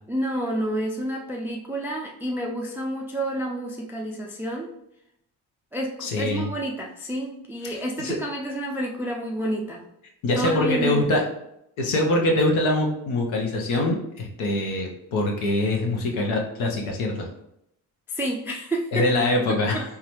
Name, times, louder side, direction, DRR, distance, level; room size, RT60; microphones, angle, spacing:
voice 1, 0.1-4.7 5.7-9.9 10.4-11.1 18.1-19.1 19.5-19.8, right 1 dB, 5° right, 0 dB, 0.3 m, -29 dB
voice 2, 6.0-6.5 7.6-8.2 10.2-11.2 11.8-17.3 18.9-19.8, left 1 dB, 70° left, 1 dB, 0.9 m, -24 dB
3.7 x 2.2 x 3.0 m, 0.80 s
hypercardioid pair, 50°, 50 cm